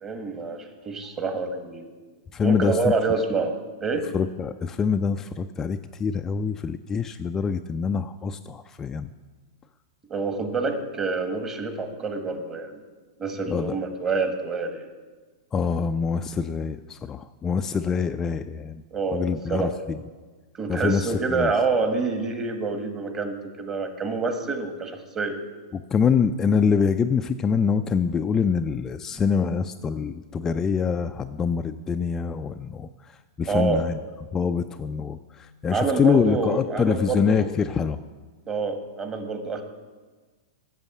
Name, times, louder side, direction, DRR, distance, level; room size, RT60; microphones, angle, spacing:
voice 1, 0.0-1.9 2.4-3.5 3.8-4.1 10.1-12.8 13.2-14.8 18.9-19.8 20.6-25.4 33.5-33.9 35.7-37.5 38.5-39.6, right 4 dB, 25° right, 6 dB, 1.5 m, -27 dB
voice 2, 2.3-2.9 4.1-9.1 13.5-13.8 15.5-18.8 19.1-20.0 20.7-21.5 25.7-34.0 34.3-38.0, left 6 dB, 20° left, 8 dB, 0.3 m, -25 dB
8.2 x 7.0 x 8.2 m, 1.4 s
hypercardioid pair, 105°, 2 cm